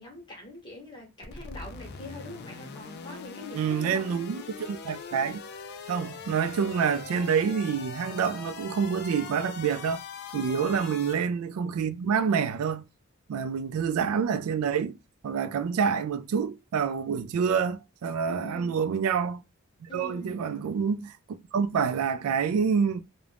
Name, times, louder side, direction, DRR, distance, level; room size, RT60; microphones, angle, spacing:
voice 1, 0.0-4.1 10.5-10.8 18.3-18.8 19.9-20.5, left 1 dB, 20° left, 1.0 m, -43 dB
sound 1, 1.2-11.1, left 5 dB, 50° left, 0.3 m, -42 dB
voice 2, 3.5-5.4 5.9-10.0 10.3-12.8 13.3-15.0 15.2-19.4 19.8-21.2 21.5-23.0, right 6 dB, 90° right, 0.3 m, -27 dB
2.4 x 2.1 x 3.3 m
head